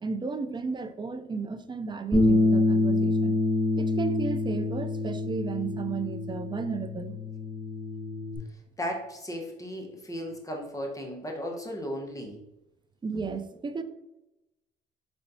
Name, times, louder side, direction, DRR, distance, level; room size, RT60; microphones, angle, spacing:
voice 1, 0.0-3.4 3.8-7.1 13.0-13.8, right 4 dB, 25° right, 0.4 m, -33 dB
Bass guitar, 2.1-8.4, left 2 dB, 5° right, 1.6 m, -26 dB
voice 2, 8.8-12.4, equal, 15° left, 1.0 m, -35 dB
4.4 x 4.1 x 2.7 m
cardioid pair, 90°, 20 cm